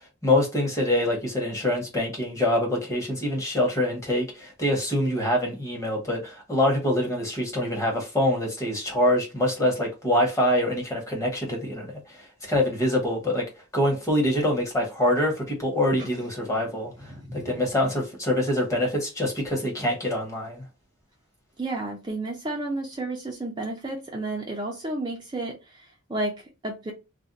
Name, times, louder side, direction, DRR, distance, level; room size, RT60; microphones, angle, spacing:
voice 1, 0.0-13.5 13.7-20.6, left 1 dB, 15° left, 1.0 m, -25 dB
voice 2, 17.0-17.5 21.6-26.9, right 2 dB, 20° right, 0.5 m, -32 dB
2.5 x 2.1 x 3.8 m
head